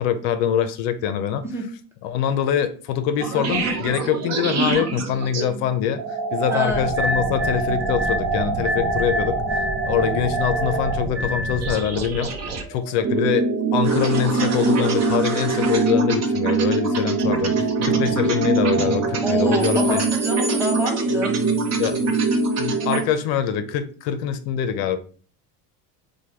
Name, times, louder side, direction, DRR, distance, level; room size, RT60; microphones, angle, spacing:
voice 1, 0.0-1.4 2.0-12.3 12.7-20.0 21.8-22.2 22.6-25.0, left 9 dB, 70° left, 10 dB, 0.6 m, -24 dB
sound 1, 3.2-23.0, right 3 dB, 40° right, 0.8 m, -23 dB
voice 2, 6.5-6.8 19.2-21.3, left 1 dB, 5° right, 0 dB, 0.7 m, -26 dB
3.2 x 2.2 x 4.3 m, 0.41 s
supercardioid pair, 125°, 43 cm